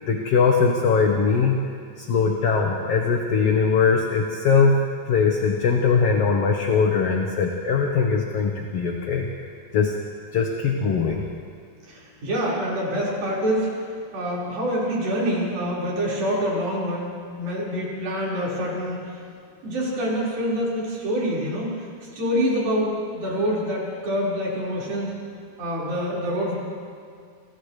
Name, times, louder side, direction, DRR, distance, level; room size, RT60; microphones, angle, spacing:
voice 1, 0.1-1.6 2.0-4.8 5.1-9.3 9.7-9.9 10.3-11.2, left 5 dB, 55° left, 1 dB, 2.0 m, -21 dB
voice 2, 11.9-13.7 14.1-19.1 19.6-21.7 22.2-25.1 25.6-26.6, equal, 80° right, -6 dB, 7.0 m, -26 dB
30.0 x 26.0 x 3.4 m, 2.3 s
omnidirectional pair, 4.1 m